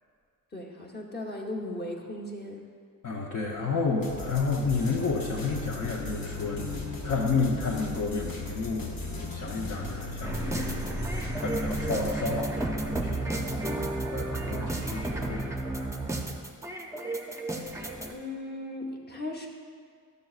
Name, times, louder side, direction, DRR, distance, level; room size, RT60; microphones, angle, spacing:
voice 1, 0.5-2.6 18.1-19.5, left 1 dB, 30° left, -1 dB, 0.8 m, -37 dB
voice 2, 3.0-13.7 14.1-15.5, left 4 dB, 65° left, -3 dB, 0.8 m, -31 dB
sound 1, 4.0-12.1, left 2 dB, 85° left, 1.2 m, -37 dB
sound 2, 10.2-18.1, right 2 dB, 10° right, 0.4 m, -32 dB
12.0 x 6.7 x 2.4 m, 2.1 s
wide cardioid pair, 165°, 34 cm